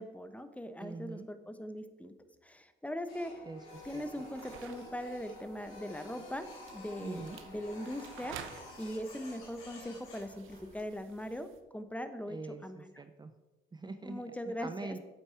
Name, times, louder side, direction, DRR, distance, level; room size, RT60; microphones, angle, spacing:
voice 1, 0.0-2.1 2.4-3.4 3.8-8.4 8.8-11.5 11.7-12.9 14.0-14.9, equal, 5° left, 10 dB, 0.8 m, -40 dB
voice 2, 0.8-1.3 3.5-4.0 7.0-7.4 12.3-13.3 13.7-14.3 14.6-15.0, right 3 dB, 20° right, 9 dB, 0.6 m, -43 dB
Printer, 3.1-10.9, left 2 dB, 90° left, 3.4 m, -51 dB
sound 1, 3.7-11.6, right 8 dB, 90° right, 0.8 m, -53 dB
8.2 x 8.0 x 4.5 m, 1.1 s
cardioid pair, 90°, 20 cm